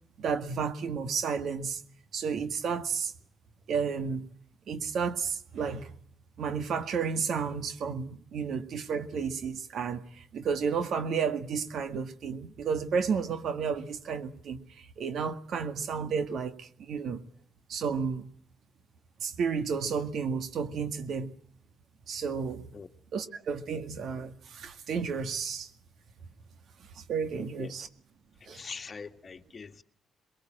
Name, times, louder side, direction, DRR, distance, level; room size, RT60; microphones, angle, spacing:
voice 1, 0.2-1.8 2.1-3.1 3.7-4.3 4.7-5.9 6.4-14.6 15.0-17.2 17.7-18.3 19.2-21.3 22.1-22.6 23.1-25.7 27.1-27.9 28.5-28.6, right 6 dB, 65° right, 1.9 m, -32 dB
voice 2, 27.3-27.8 28.4-29.8, left 5 dB, 35° left, 1.7 m, -43 dB
22.5 x 21.5 x 8.8 m
cardioid pair, 90°, 0 cm